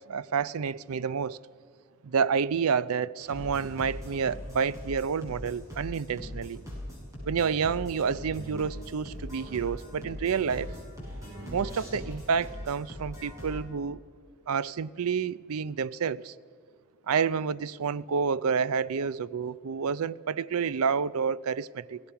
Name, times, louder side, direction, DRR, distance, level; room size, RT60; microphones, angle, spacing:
voice 1, 0.1-1.4 2.0-6.6 7.2-10.7 11.5-14.0 14.5-16.3 17.1-22.0, right 6 dB, 70° right, 0.5 m, -29 dB
sound 1, 3.2-13.6, left 1 dB, 15° right, 6.3 m, -41 dB
27.0 x 17.5 x 5.8 m
head